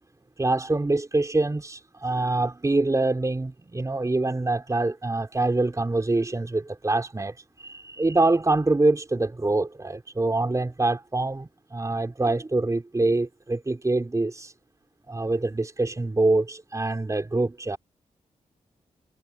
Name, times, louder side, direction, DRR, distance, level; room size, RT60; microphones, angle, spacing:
voice 1, 0.4-14.5 15.1-17.8, right 2 dB, 25° right, 3.8 m, -25 dB
cardioid pair, 70°, 13 cm